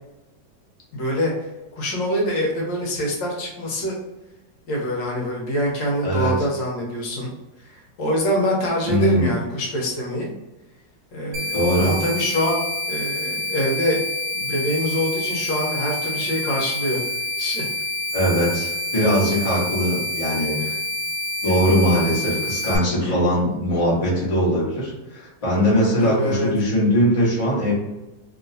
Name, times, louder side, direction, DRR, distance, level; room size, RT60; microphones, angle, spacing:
voice 1, 0.9-1.3 1.7-4.0 4.7-7.3 7.7-10.3 11.1-12.6 12.9-14.0 14.3-17.0 17.4-17.6 20.6-20.8 23.0-23.2 26.0-26.5, equal, 75° left, -2 dB, 1.5 m, -25 dB
voice 2, 6.0-6.5 8.9-9.3 11.5-11.9 18.1-20.5 21.4-27.7, equal, 20° left, -7 dB, 1.0 m, -21 dB
sound 1, 11.3-22.8, left 2 dB, 80° right, 1.3 m, -27 dB
3.0 x 3.0 x 2.6 m, 1.1 s
omnidirectional pair, 2.0 m